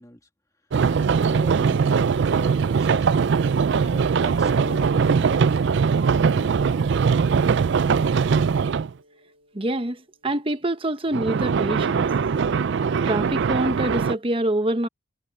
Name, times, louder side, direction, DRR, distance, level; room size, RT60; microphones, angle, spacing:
voice 1, 0.0-3.1 3.8-7.3, left 1 dB, 15° left, 2.2 m, -44 dB
sound 1, 0.7-8.9 11.1-14.1, right 6 dB, 55° right, 0.4 m, -21 dB
sound 2, 4.4-9.6, right 2 dB, 75° right, 2.0 m, -40 dB
voice 2, 9.5-12.1 13.0-14.9, right 1 dB, 25° right, 1.0 m, -25 dB
head